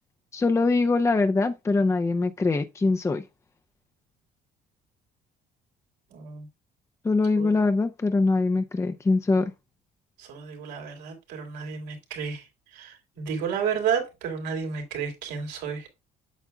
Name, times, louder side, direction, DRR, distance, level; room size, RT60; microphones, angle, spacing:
voice 1, 0.3-3.2 7.0-9.5, left 3 dB, 15° left, 0.6 m, -23 dB
voice 2, 6.1-6.5 7.4-7.5 10.2-12.4 12.7-15.9, right 7 dB, 85° right, 3.3 m, -31 dB
8.2 x 7.1 x 2.3 m
cardioid pair, 110°, 17 cm